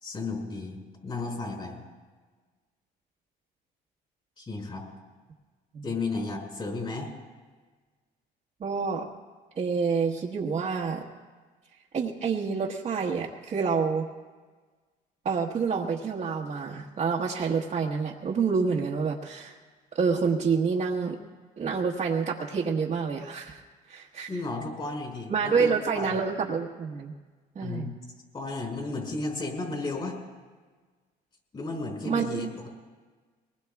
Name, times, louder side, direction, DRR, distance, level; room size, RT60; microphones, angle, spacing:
voice 1, 0.0-1.8 4.4-4.8 5.8-7.1 24.3-26.1 27.6-28.0 28.3-30.2 31.5-32.7, left 3 dB, 30° left, -1 dB, 5.2 m, -33 dB
voice 2, 8.6-9.1 9.6-11.1 11.9-14.1 15.2-19.5 19.9-21.2 21.6-23.6 23.9-24.3 25.3-27.1 27.5-27.9 32.0-32.5, right 5 dB, 45° right, -3 dB, 1.3 m, -28 dB
23.0 x 20.0 x 2.4 m, 1.4 s
cardioid pair, 110°, 17 cm